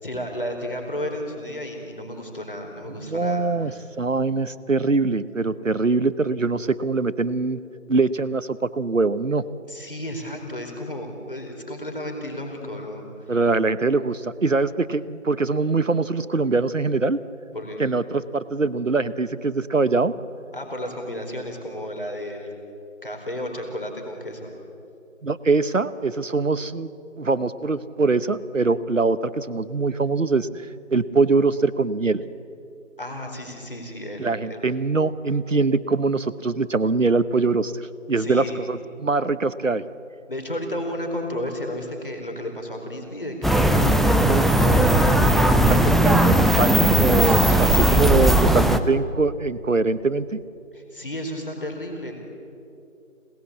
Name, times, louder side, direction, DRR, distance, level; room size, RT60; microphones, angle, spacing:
voice 1, 0.0-3.8 9.7-13.3 17.5-17.8 20.5-22.5 23.0-24.5 33.0-34.6 38.2-38.6 40.3-46.0 47.2-48.0 50.7-52.2, equal, 40° left, 2 dB, 4.5 m, -33 dB
voice 2, 3.0-7.6 7.9-9.4 13.3-17.2 17.8-20.1 25.2-26.9 27.2-30.5 30.9-32.2 34.2-39.8 44.3-44.4 45.7-50.4, right 3 dB, 70° right, 14 dB, 1.1 m, -23 dB
sound 1, 43.4-48.8, right 1 dB, ahead, 0.6 m, -17 dB
27.0 x 19.0 x 8.4 m, 2.6 s
figure-of-eight pair, 180°, 39 cm